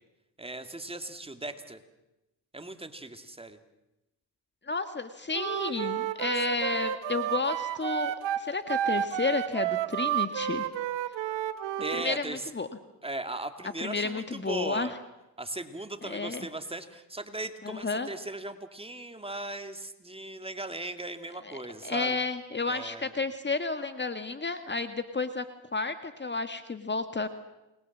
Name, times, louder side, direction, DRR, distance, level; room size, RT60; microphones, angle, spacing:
voice 1, 0.4-1.8 2.5-3.6 11.8-12.5 13.0-14.9 15.4-22.2 22.7-23.1, right 2 dB, 15° right, 7 dB, 2.5 m, -38 dB
voice 2, 4.7-10.7 12.0-12.7 13.8-14.9 16.0-16.5 17.6-18.1 21.4-25.5 25.7-27.3, left 3 dB, 25° left, 9 dB, 1.7 m, -31 dB
Wind instrument woodwind instrument, 5.3-12.1, right 11 dB, 80° right, 1.7 m, -31 dB
29.0 x 21.0 x 7.4 m, 0.96 s
supercardioid pair, 75°, 42 cm